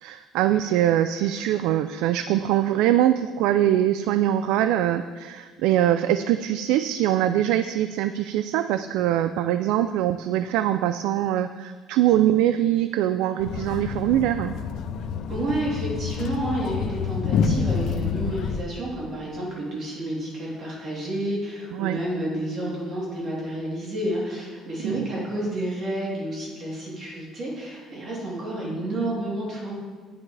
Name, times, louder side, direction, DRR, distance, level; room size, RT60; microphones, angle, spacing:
voice 1, 0.0-14.5 21.7-22.0 24.8-25.0, right 12 dB, 90° right, 11 dB, 0.3 m, -23 dB
sound 1, 13.4-18.6, left 6 dB, 60° left, 0.7 m, -28 dB
voice 2, 15.3-29.7, right 1 dB, 45° right, -5 dB, 3.2 m, -30 dB
10.5 x 9.7 x 3.3 m, 1.5 s
cardioid pair, 150°, 0 cm